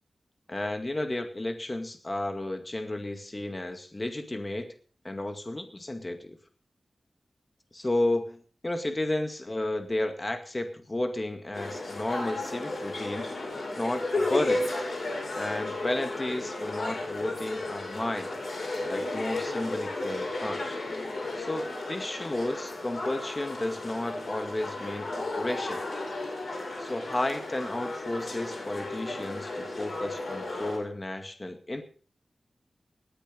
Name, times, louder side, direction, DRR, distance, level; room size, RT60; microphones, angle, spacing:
voice 1, 0.5-4.7 5.0-6.4 7.7-13.3 13.8-14.7 15.4-18.4 18.9-20.8 21.4-25.8 26.8-31.8, left 1 dB, 25° left, 7 dB, 2.0 m, -32 dB
sound 1, 11.5-30.8, left 2 dB, 60° left, 7.0 m, -34 dB
18.5 x 10.0 x 5.4 m, 0.43 s
wide cardioid pair, 110°, 0 cm